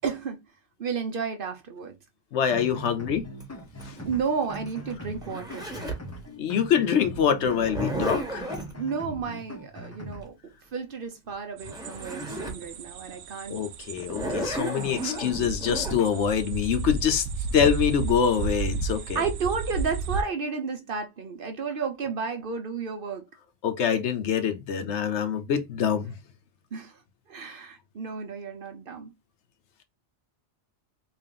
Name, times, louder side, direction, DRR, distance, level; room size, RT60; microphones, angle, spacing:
voice 1, 0.0-0.4 0.8-1.9 4.0-5.7 8.7-13.6 19.1-23.3 26.7-27.0 27.3-29.1, right 5 dB, 55° right, 0.8 m, -32 dB
voice 2, 2.3-3.3 3.9-4.0 6.4-8.5 13.5-17.3 17.5-19.2 23.6-26.1, left 8 dB, 75° left, 0.9 m, -25 dB
sound 1, 2.5-10.2, equal, 15° left, 0.5 m, -41 dB
Zipper (clothing), 3.4-6.1 7.4-8.7 11.3-11.4 11.6-12.6 13.1-13.2 14.0-16.0, right 1 dB, 5° right, 1.1 m, -33 dB
sound 2, 11.6-20.2, right 4 dB, 80° right, 0.9 m, -33 dB
3.5 x 2.5 x 3.7 m
omnidirectional pair, 1.2 m